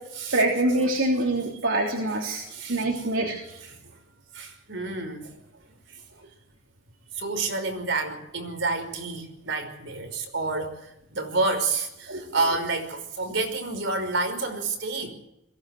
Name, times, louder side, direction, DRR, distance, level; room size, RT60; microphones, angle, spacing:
voice 1, 0.3-3.6 12.1-12.2, right 2 dB, 80° right, 0 dB, 3.3 m, -25 dB
voice 2, 2.5-3.1 3.7-3.8 4.3-5.4 7.1-15.1, right 3 dB, 60° right, 6 dB, 5.5 m, -29 dB
22.5 x 16.5 x 7.9 m, 0.85 s
head